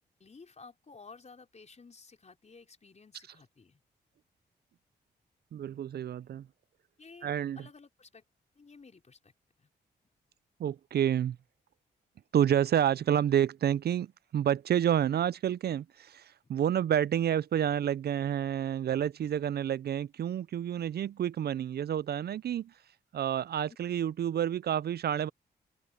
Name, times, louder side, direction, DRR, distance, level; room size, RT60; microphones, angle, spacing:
voice 1, 0.2-3.8 7.0-8.2 8.5-9.3 9.6-9.7, left 4 dB, 40° left, 4.4 m, -54 dB
voice 2, 5.5-6.5 7.2-7.7 10.6-11.4 12.3-22.7 23.1-25.3, right 10 dB, 60° right, 0.5 m, -29 dB
open air
cardioid pair, 60°, 18 cm